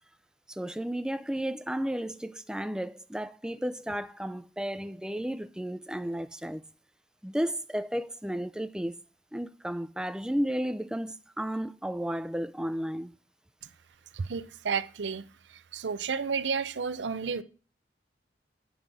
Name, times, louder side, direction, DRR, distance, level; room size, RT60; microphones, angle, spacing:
voice 1, 0.5-6.6 7.2-8.9 9.3-13.1, equal, 5° right, 0.4 m, -33 dB
voice 2, 14.1-15.2 15.5-17.4, right 5 dB, 80° right, 0.6 m, -31 dB
9.5 x 6.1 x 5.1 m
head